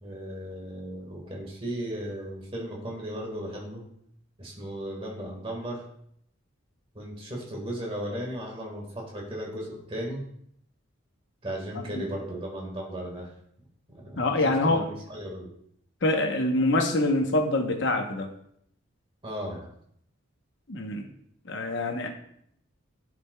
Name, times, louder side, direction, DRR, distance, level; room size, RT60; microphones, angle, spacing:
voice 1, 0.0-3.8 4.4-5.8 6.9-10.2 11.4-13.3 13.9-15.5 19.2-19.7, equal, 25° right, -2 dB, 1.6 m, -36 dB
voice 2, 14.2-14.9 16.0-18.3 20.7-21.1 21.5-22.1, left 2 dB, 55° left, 4 dB, 0.9 m, -25 dB
9.7 x 5.1 x 2.2 m, 0.70 s
head